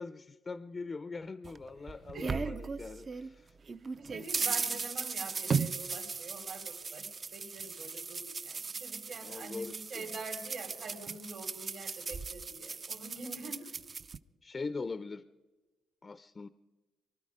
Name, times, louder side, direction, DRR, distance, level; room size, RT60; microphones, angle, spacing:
voice 1, 0.0-3.5 9.2-10.1 14.4-15.2 16.0-16.5, left 4 dB, 30° left, 13 dB, 0.5 m, -41 dB
sound 1, 1.4-3.3 3.7-14.2, right 5 dB, 40° right, 0.5 m, -37 dB
voice 2, 2.1-3.0 3.9-7.1 7.3-13.7, right 3 dB, 60° right, 4 dB, 3.4 m, -45 dB
23.5 x 12.5 x 4.9 m, 1.2 s
cardioid pair, 90°, 0 cm